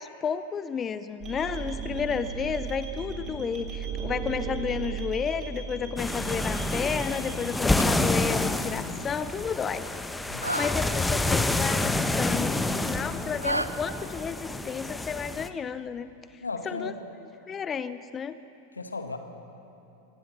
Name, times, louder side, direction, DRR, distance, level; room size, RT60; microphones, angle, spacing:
voice 1, 0.0-9.9 10.5-16.9 17.5-18.4, left 6 dB, 20° left, 14 dB, 0.6 m, -32 dB
sound 1, 1.2-7.5, right 6 dB, 30° right, 3.4 m, -36 dB
sound 2, 6.0-15.5, left 2 dB, 5° left, 0.9 m, -28 dB
sound 3, 7.5-13.7, right 1 dB, 85° right, 0.8 m, -37 dB
voice 2, 10.3-10.7 16.4-17.0 18.7-19.2, left 3 dB, 80° left, 7 dB, 1.8 m, -36 dB
25.0 x 17.5 x 6.8 m, 2.9 s
figure-of-eight pair, 90°, 0 cm